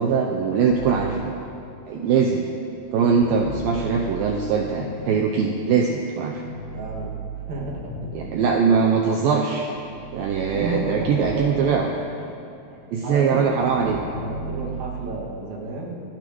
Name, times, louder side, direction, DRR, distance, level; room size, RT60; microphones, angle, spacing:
voice 1, 0.0-1.4 1.9-2.4 2.9-6.4 8.1-9.7 10.1-11.9 12.9-14.0, right 6 dB, 90° right, 2 dB, 2.0 m, -21 dB
sound 1, 0.7-5.8 6.3-9.0 9.5-12.3 12.6-15.3, right 3 dB, 65° left, 4.6 m, -37 dB
voice 2, 6.7-7.2 7.5-8.3 8.6-9.0 10.5-12.1 13.0-16.0, right 2 dB, 50° right, -3 dB, 2.8 m, -32 dB
27.0 x 10.5 x 3.1 m, 2.8 s
omnidirectional pair, 5.0 m